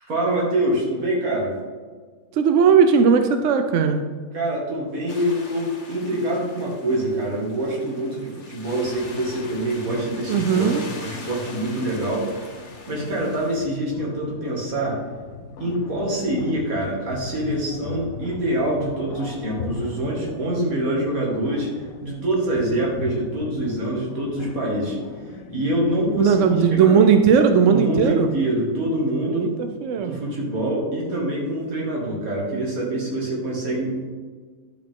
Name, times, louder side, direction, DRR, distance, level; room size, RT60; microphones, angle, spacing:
voice 1, 0.0-1.6 4.3-12.6 12.9-15.0 15.6-21.7 22.0-25.0 25.5-27.0 27.7-29.5 29.9-33.9, right 1 dB, 85° right, -4 dB, 2.5 m, -25 dB
voice 2, 2.4-4.0 10.3-10.8 26.2-28.3 29.3-30.2, right 6 dB, 70° right, 6 dB, 0.9 m, -17 dB
sound 1, 5.1-13.7, left 3 dB, 60° left, 1.4 m, -42 dB
sound 2, 8.8-26.9, left 6 dB, 85° left, 1.2 m, -39 dB
11.5 x 5.0 x 3.7 m, 1.5 s
omnidirectional pair, 1.4 m